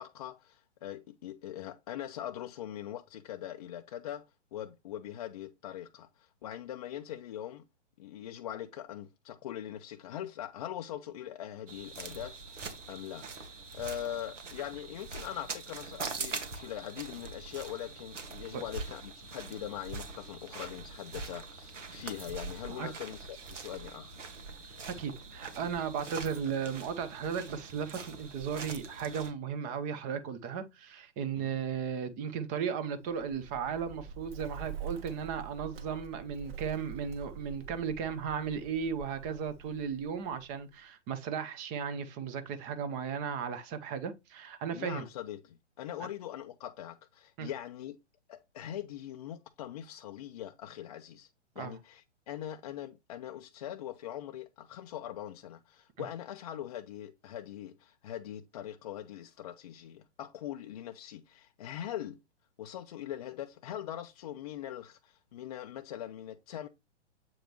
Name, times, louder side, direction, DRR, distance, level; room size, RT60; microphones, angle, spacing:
voice 1, 0.0-4.2 4.5-7.6 8.0-24.2 31.3-31.6 44.7-48.0 48.3-51.3 51.6-62.2 62.6-66.7, left 11 dB, 35° left, 0.4 m, -42 dB
sound 1, 11.7-29.3, right 4 dB, 85° right, 1.7 m, -43 dB
voice 2, 24.9-45.1 47.4-47.5 51.6-51.8, right 7 dB, 25° right, 0.7 m, -35 dB
Bird, 33.0-40.8, right 7 dB, 55° right, 1.7 m, -45 dB
7.9 x 5.0 x 3.0 m
hypercardioid pair, 135°, 36 cm